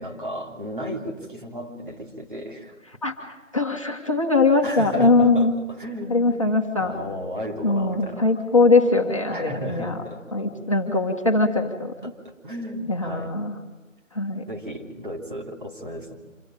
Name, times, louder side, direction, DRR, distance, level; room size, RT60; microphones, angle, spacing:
voice 1, 0.0-2.7 4.6-6.3 6.8-8.3 9.3-10.2 12.0-13.3 14.5-16.1, equal, 40° right, 1 dB, 3.4 m, -34 dB
voice 2, 3.0-5.5 6.1-6.9 7.6-10.0 10.3-12.1 12.9-13.5 14.1-14.4, left 3 dB, 25° left, -1 dB, 1.5 m, -21 dB
26.5 x 16.5 x 9.0 m, 1.2 s
figure-of-eight pair, 180°, 39 cm